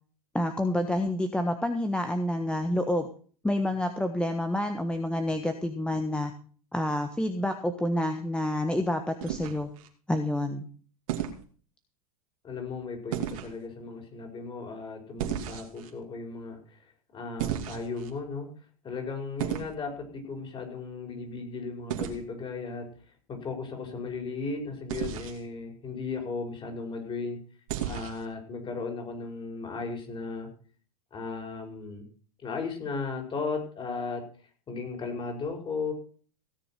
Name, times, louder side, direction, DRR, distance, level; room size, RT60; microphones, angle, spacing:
voice 1, 0.3-3.1 3.4-6.3 6.7-9.7 10.1-10.7, left 1 dB, 5° left, 6 dB, 1.3 m, -28 dB
sound 1, 9.2-9.9 11.1-11.4 13.1-13.5 15.2-15.9 17.4-18.1 19.4-19.7 21.9-22.2 24.9-25.4 27.7-28.3, right 11 dB, 65° right, 2.7 m, -33 dB
voice 2, 12.4-16.8 17.1-18.5 18.8-22.9 23.3-27.4 27.9-30.5 31.1-32.0 32.4-34.2 34.7-35.9, left 4 dB, 25° left, 3 dB, 5.3 m, -36 dB
17.0 x 6.9 x 5.9 m, 0.43 s
hypercardioid pair, 105°, 19 cm